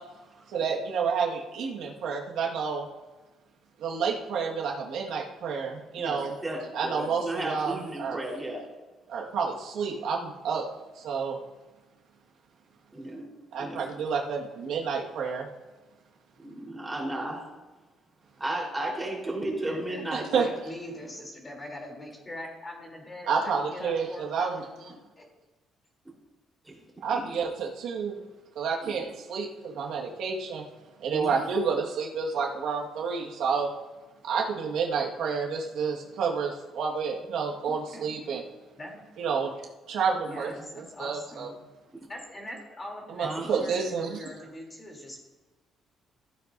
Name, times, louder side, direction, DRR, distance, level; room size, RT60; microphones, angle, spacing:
voice 1, 0.5-2.9 3.8-6.3 6.7-8.2 9.1-10.7 10.9-11.4 13.5-15.5 20.1-20.4 23.3-24.6 27.0-28.2 28.5-30.6 31.0-33.7 34.2-38.4 39.2-39.5 39.9-41.5 43.1-44.3, right 5 dB, 75° right, -2 dB, 1.7 m, -29 dB
voice 2, 6.0-8.7 12.9-13.3 13.6-13.9 16.4-17.4 18.4-20.5 26.6-26.8 27.1-27.2 28.8-29.0 31.1-31.3 40.3-40.4 43.2-43.7, right 1 dB, 10° right, -3 dB, 4.0 m, -34 dB
voice 3, 19.4-25.2 37.7-38.1 38.8-39.0 40.3-41.5 42.1-45.2, left 1 dB, 25° left, -1 dB, 3.3 m, -42 dB
15.0 x 9.3 x 2.7 m, 1.2 s
cardioid pair, 115°, 0 cm